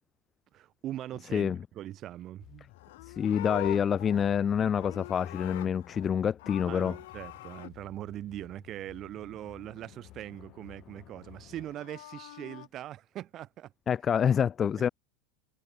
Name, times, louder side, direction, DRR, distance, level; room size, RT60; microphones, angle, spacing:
voice 1, 0.5-2.7 6.7-13.7, right 13 dB, 35° right, 1.3 m, -41 dB
sound 1, 2.4-11.7, left 16 dB, 45° left, 3.0 m, -55 dB
Livestock farm animals working animals, 2.7-6.1 6.4-7.7 11.5-12.7, left 18 dB, 85° left, 1.8 m, -43 dB
voice 2, 3.1-6.9 13.9-14.9, left 8 dB, 25° left, 0.4 m, -27 dB
supercardioid pair, 150°, 0 cm